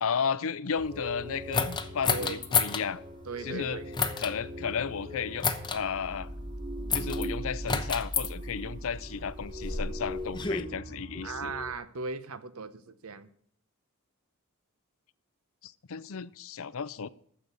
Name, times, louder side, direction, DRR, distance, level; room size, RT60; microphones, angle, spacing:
voice 1, 0.0-3.0 3.4-3.8 4.2-6.3 6.9-11.5 15.6-17.1, left 6 dB, 65° left, 17 dB, 0.6 m, -33 dB
sound 1, 0.8-11.7, equal, 25° right, 1.9 m, -40 dB
sound 2, 1.5-2.8 3.9-4.3 5.4-5.8 6.9-7.3 7.7-8.3 9.2-10.6, left 5 dB, 20° left, 0.9 m, -29 dB
voice 2, 2.0-2.4 3.3-3.9 11.2-13.3, right 4 dB, 70° right, 14 dB, 0.9 m, -38 dB
9.9 x 7.0 x 8.2 m, 0.64 s
head